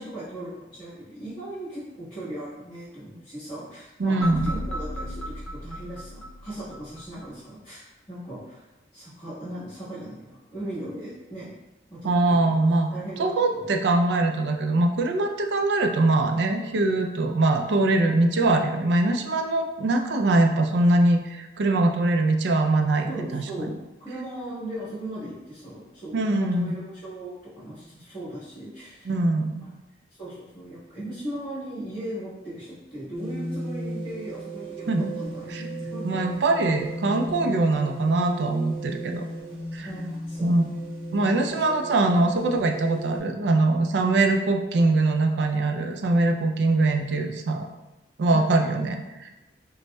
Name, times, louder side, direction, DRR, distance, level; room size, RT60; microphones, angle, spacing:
voice 1, 0.0-11.6 11.9-12.6 12.9-13.7 23.1-29.1 29.6-29.7 30.2-34.9 35.1-35.5 35.8-36.2 39.8-40.8 41.5-41.6 48.3-48.7, right 1 dB, 30° left, -16 dB, 1.3 m, -38 dB
voice 2, 4.0-4.5 12.0-12.9 13.2-23.4 26.1-26.7 29.1-29.6 34.9-35.1 35.5-35.6 36.0-39.2 39.7-39.9 40.4-40.6 41.1-47.7 48.2-49.3, right 2 dB, 80° right, 4 dB, 0.4 m, -22 dB
sound 1, 4.2-7.3, equal, 5° left, 0.5 m, -35 dB
sound 2, 33.1-43.2, right 1 dB, 30° right, 0.9 m, -35 dB
5.2 x 2.1 x 2.2 m, 1.1 s
head